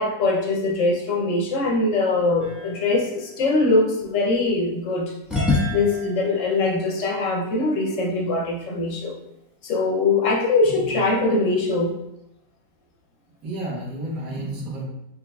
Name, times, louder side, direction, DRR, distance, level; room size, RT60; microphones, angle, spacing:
voice 1, 0.0-5.1 5.7-9.1 9.6-12.0, left 3 dB, 60° left, 0 dB, 0.9 m, -22 dB
sound 1, 2.4-4.6 5.3-8.2, left 2 dB, ahead, 1.0 m, -30 dB
voice 2, 13.4-14.8, right 1 dB, 80° right, -4 dB, 1.7 m, -31 dB
5.5 x 3.1 x 2.3 m, 0.86 s
omnidirectional pair, 1.8 m